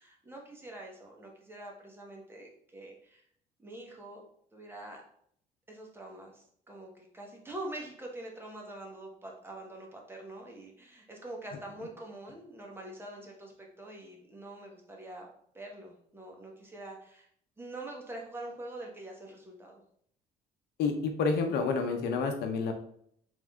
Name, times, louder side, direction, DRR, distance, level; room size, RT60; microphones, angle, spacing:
voice 1, 0.0-3.3 3.6-4.2 4.5-5.0 5.7-15.3 15.5-17.3 17.6-19.8, right 1 dB, 15° right, -1 dB, 1.1 m, -45 dB
voice 2, 20.8-22.7, left 4 dB, 75° left, 5 dB, 0.7 m, -29 dB
3.6 x 3.2 x 3.6 m, 0.65 s
cardioid pair, 110°, 17 cm